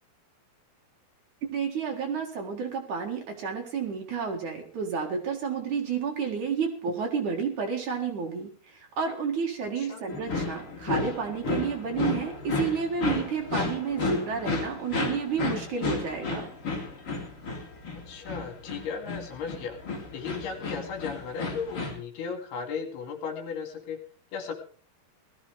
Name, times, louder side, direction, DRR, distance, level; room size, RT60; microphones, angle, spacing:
voice 1, 1.5-16.5, right 6 dB, 55° right, 1 dB, 2.9 m, -31 dB
sound 1, 10.1-21.9, left 3 dB, 35° left, 4.2 m, -32 dB
voice 2, 18.1-19.8 20.1-24.0 24.3-24.6, left 6 dB, 70° left, 5 dB, 4.0 m, -35 dB
18.5 x 14.0 x 3.5 m, 0.41 s
omnidirectional pair, 4.8 m